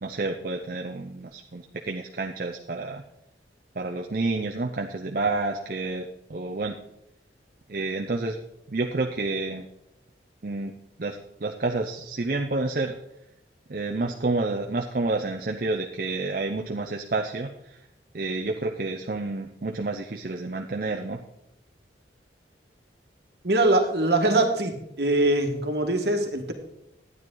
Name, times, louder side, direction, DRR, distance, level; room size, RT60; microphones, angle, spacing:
voice 1, 0.0-3.0 3.8-6.0 6.3-6.8 7.7-8.4 8.7-9.7 10.4-10.7 11.0-13.0 13.7-17.8 18.1-21.2, right 3 dB, 50° right, 3 dB, 0.6 m, -29 dB
voice 2, 23.4-26.5, right 2 dB, 65° right, 4 dB, 1.6 m, -23 dB
12.5 x 9.3 x 3.9 m, 0.84 s
head